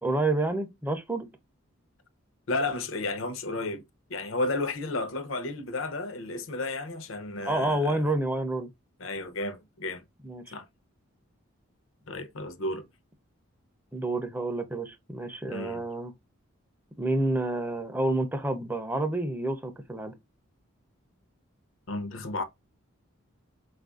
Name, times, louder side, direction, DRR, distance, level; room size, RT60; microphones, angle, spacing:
voice 1, 0.0-1.3 7.4-8.7 10.2-10.6 13.9-16.1 17.0-20.1, right 2 dB, 10° right, 0.4 m, -29 dB
voice 2, 2.5-3.8 4.1-8.1 9.0-10.0 10.5-10.7 12.1-12.9 15.5-15.8 21.9-22.4, left 2 dB, 70° left, 0.6 m, -32 dB
4.3 x 2.4 x 2.3 m
head